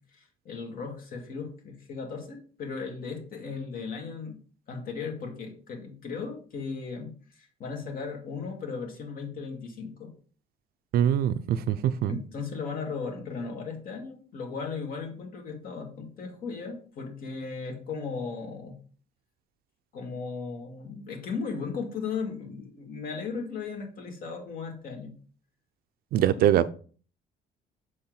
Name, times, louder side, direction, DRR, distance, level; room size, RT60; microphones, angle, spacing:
voice 1, 0.1-4.4 4.7-10.1 12.1-18.8 19.9-25.1 26.3-26.4, left 5 dB, 55° left, 2 dB, 2.0 m, -36 dB
voice 2, 10.9-12.2 26.1-26.7, right 10 dB, 65° right, 14 dB, 0.5 m, -23 dB
6.4 x 4.3 x 3.9 m, 0.42 s
cardioid pair, 110°, 17 cm